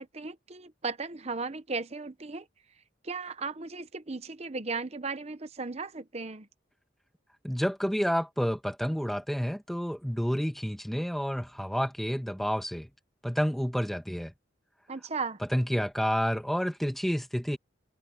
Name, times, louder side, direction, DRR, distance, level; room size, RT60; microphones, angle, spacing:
voice 1, 0.0-2.5 3.0-6.5 14.9-15.4, right 4 dB, 35° right, 0.9 m, -36 dB
voice 2, 7.4-12.9 13.2-14.3 15.5-17.6, equal, ahead, 1.9 m, -29 dB
head